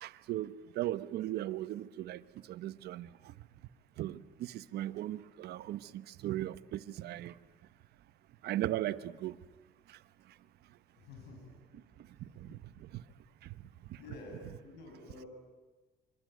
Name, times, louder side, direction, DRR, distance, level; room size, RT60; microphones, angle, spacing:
voice 1, 0.0-2.2 2.5-3.3 4.0-7.3 8.4-9.4 9.9-10.0 12.4-13.0 13.4-13.5 13.9-14.0, right 14 dB, 70° right, 13 dB, 1.1 m, -38 dB
voice 2, 10.9-11.8 12.5-12.6 14.0-15.3, left 3 dB, 80° left, 1 dB, 7.9 m, -50 dB
26.0 x 24.5 x 9.4 m, 1.2 s
cardioid pair, 110°, 17 cm